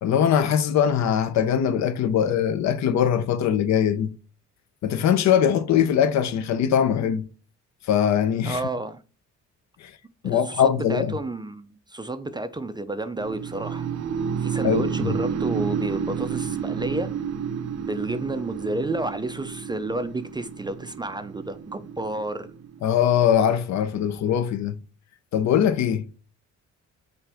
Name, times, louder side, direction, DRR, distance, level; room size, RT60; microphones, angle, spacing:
voice 1, 0.0-4.1 4.8-7.2 7.9-8.6 9.8-9.9 10.2-11.1 14.6-15.2 22.8-24.8 25.3-26.1, left 9 dB, 65° left, 0.5 m, -21 dB
voice 2, 8.4-9.0 10.2-13.9 14.4-17.1 17.8-22.5, right 2 dB, 15° right, 0.3 m, -31 dB
sound 1, 13.2-23.1, right 7 dB, 60° right, 0.6 m, -30 dB
5.8 x 2.5 x 3.4 m
cardioid pair, 90°, 30 cm